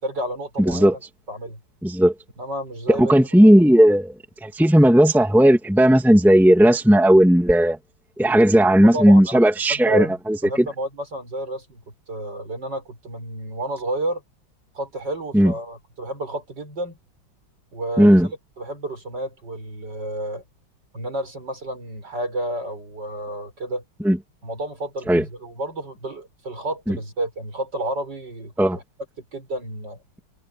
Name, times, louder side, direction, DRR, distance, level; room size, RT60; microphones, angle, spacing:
voice 1, 0.0-1.0 1.3-1.6 2.4-3.1 3.4-3.5 8.9-9.4 9.7-10.1 10.4-11.8 12.1-14.2 14.7-17.0 17.7-20.4 20.9-23.8 24.4-28.8 29.2-30.0, right 1 dB, 60° right, 7.3 m, -31 dB
voice 2, 0.6-0.9 1.8-2.1 2.9-4.1 4.4-7.8 8.2-10.7 15.3-15.5 18.0-18.3 24.0-24.2 25.1-25.2 26.9-27.0 28.6-28.8, equal, ahead, 2.3 m, -15 dB
omnidirectional pair, 2.2 m